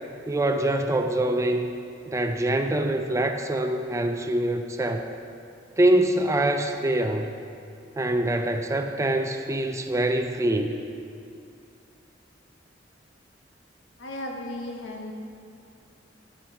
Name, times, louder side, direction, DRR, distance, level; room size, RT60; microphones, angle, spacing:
voice 1, 0.3-1.7 2.1-5.1 5.8-7.3 8.0-10.8, right 1 dB, 15° right, 6 dB, 0.4 m, -24 dB
voice 2, 14.0-15.1, left 1 dB, 80° left, 0 dB, 1.2 m, -35 dB
11.0 x 5.9 x 4.9 m, 2.6 s
head